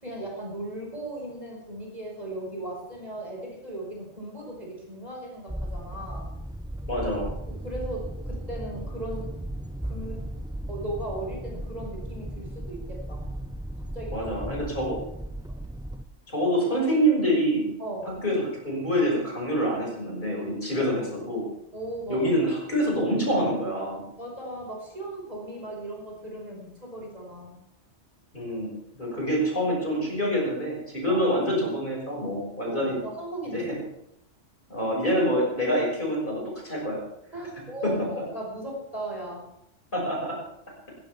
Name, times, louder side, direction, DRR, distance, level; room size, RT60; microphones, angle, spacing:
voice 1, 0.0-6.3 7.5-9.3 9.8-10.2 10.7-13.3 13.9-14.3 15.5-15.6 17.8-18.2 20.8-20.9 21.7-22.3 24.2-27.6 31.1-31.2 32.7-33.7 37.3-39.4, right 1 dB, 35° right, -2 dB, 5.5 m, -37 dB
sound 1, 5.5-16.0, right 1 dB, 5° right, 0.4 m, -36 dB
voice 2, 6.9-7.3 14.1-15.0 16.3-17.7 18.2-21.4 22.1-24.0 28.3-28.7 29.0-33.0 33.5-33.6 34.7-37.0 37.8-37.9 39.9-40.4, equal, 45° left, -2 dB, 6.4 m, -26 dB
18.0 x 16.0 x 3.6 m, 0.80 s
omnidirectional pair, 1.2 m